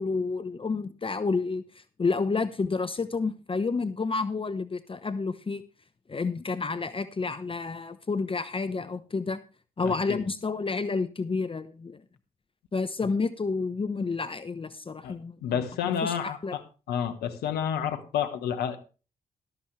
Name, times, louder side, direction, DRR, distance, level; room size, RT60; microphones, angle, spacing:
voice 1, 0.0-5.6 6.1-9.4 9.8-12.0 12.7-16.6, left 4 dB, 35° left, 13 dB, 0.9 m, -30 dB
voice 2, 9.8-10.2 15.0-16.6 16.9-18.8, left 8 dB, 75° left, 9 dB, 1.2 m, -30 dB
13.0 x 13.0 x 3.2 m, 0.34 s
hypercardioid pair, 40°, 17 cm